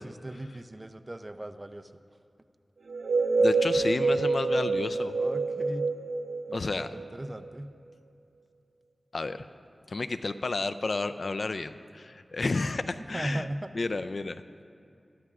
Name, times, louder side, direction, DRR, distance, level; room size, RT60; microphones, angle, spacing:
voice 1, 0.0-1.9 3.6-3.7 5.2-5.9 6.5-7.7 13.1-13.7, right 1 dB, 25° right, 8 dB, 0.5 m, -38 dB
sound 1, 2.9-7.5, right 3 dB, 85° right, 0.5 m, -27 dB
voice 2, 3.4-5.1 6.5-6.9 9.1-9.4 9.9-13.4 13.7-14.4, left 3 dB, 60° left, 11 dB, 0.4 m, -31 dB
22.0 x 13.0 x 2.4 m, 2.5 s
wide cardioid pair, 85°, 0 cm